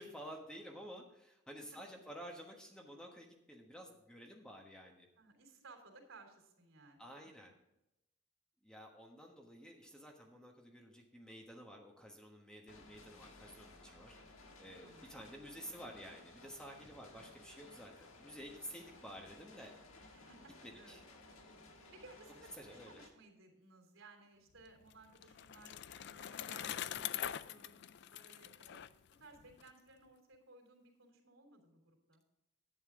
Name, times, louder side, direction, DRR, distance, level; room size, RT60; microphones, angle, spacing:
voice 1, 0.0-5.1 7.0-7.5 8.6-14.3 14.6-19.7 20.6-21.0 22.6-23.0, equal, 5° left, 1 dB, 1.3 m, -52 dB
voice 2, 5.2-7.5 14.8-15.6 17.1-17.3 20.1-21.0 21.9-28.8 29.2-32.2, right 3 dB, 85° right, 2 dB, 3.4 m, -60 dB
sound 1, 12.7-23.1, left 2 dB, 90° left, 1.6 m, -58 dB
Bicycle, 24.6-29.7, left 10 dB, 55° left, 0.4 m, -44 dB
11.0 x 9.1 x 3.8 m, 0.87 s
head